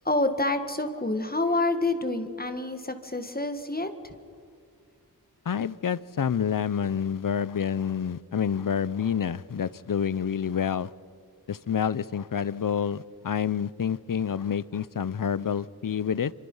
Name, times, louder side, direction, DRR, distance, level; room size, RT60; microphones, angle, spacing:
voice 1, 0.1-3.9, left 2 dB, 25° left, 7 dB, 1.9 m, -27 dB
voice 2, 5.5-10.9 11.5-16.3, left 7 dB, 55° left, 18 dB, 0.7 m, -28 dB
27.5 x 26.0 x 5.6 m, 2.3 s
wide cardioid pair, 80°, 38 cm